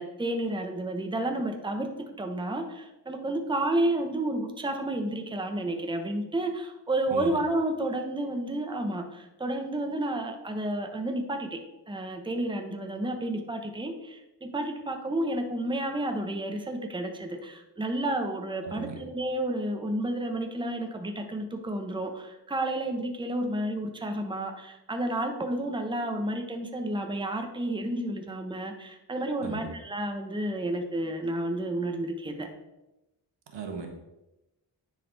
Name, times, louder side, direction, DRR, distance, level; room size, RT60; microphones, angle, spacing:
voice 1, 0.0-11.6 11.9-32.5, right 1 dB, 10° right, 4 dB, 0.9 m, -31 dB
voice 2, 7.1-7.4 18.6-19.0 29.4-29.7 33.5-33.9, right 5 dB, 75° right, 3 dB, 1.4 m, -37 dB
9.8 x 4.2 x 4.0 m, 0.95 s
cardioid pair, 75°, 43 cm